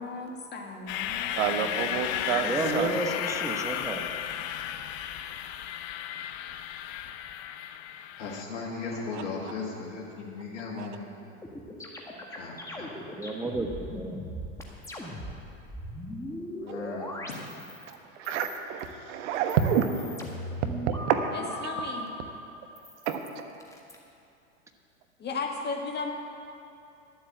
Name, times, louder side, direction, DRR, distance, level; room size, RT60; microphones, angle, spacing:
voice 1, 0.0-1.4 21.3-22.1 25.2-26.1, left 4 dB, 25° left, 1 dB, 1.9 m, -35 dB
sound 1, 0.9-8.4, left 10 dB, 55° left, 0.7 m, -34 dB
voice 2, 1.4-2.5 2.7-3.0 10.8-10.9 17.9-20.2 20.9-21.3 23.1-23.2, right 8 dB, 65° right, 7 dB, 1.2 m, -28 dB
voice 3, 2.3-4.1 13.2-13.7 13.9-14.2, right 2 dB, 5° right, 3 dB, 1.2 m, -31 dB
voice 4, 8.2-11.1 12.3-13.1 16.6-17.5, left 4 dB, 70° left, -4 dB, 2.3 m, -37 dB
sound 2, 11.4-17.9 18.2-18.9 19.3-22.1 22.7-23.9, equal, 10° left, 1.7 m, -39 dB
11.5 x 7.8 x 7.8 m, 2.6 s
hypercardioid pair, 100°, 39 cm